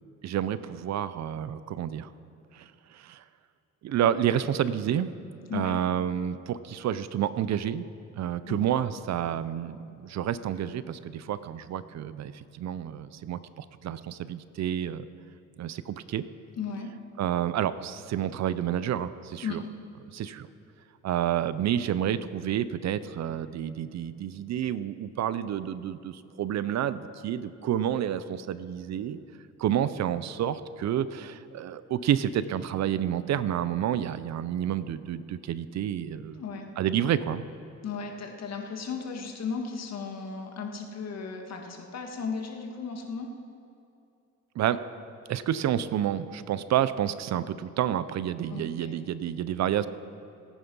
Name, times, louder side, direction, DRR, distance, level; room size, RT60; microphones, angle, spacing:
voice 1, 0.2-2.1 2.5-3.2 3.8-5.1 5.5-7.8 8.2-15.0 15.6-16.2 17.2-19.6 20.1-20.5 21.0-29.2 29.6-36.4 36.8-37.4 44.5-44.8 45.3-49.9, right 10 dB, 60° right, 15 dB, 0.6 m, -29 dB
voice 2, 5.5-5.8 8.5-8.6 16.6-16.9 19.4-19.6 36.4-36.7 37.8-43.3 48.5-48.9, left 5 dB, 60° left, 2 dB, 2.0 m, -35 dB
18.0 x 9.6 x 5.5 m, 2.7 s
cardioid pair, 90°, 30 cm